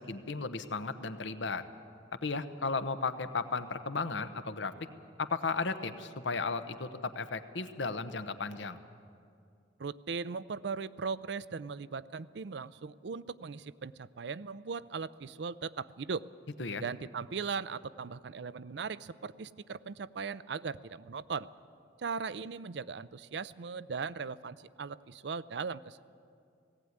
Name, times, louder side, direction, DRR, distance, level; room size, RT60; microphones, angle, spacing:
voice 1, 0.0-1.6 2.2-4.7 5.2-8.8 16.6-16.8, left 4 dB, 80° left, 10 dB, 1.0 m, -35 dB
voice 2, 9.8-16.2 16.8-21.5 22.0-26.0, right 5 dB, 65° right, 17 dB, 0.5 m, -38 dB
18.0 x 16.5 x 9.5 m, 2.4 s
head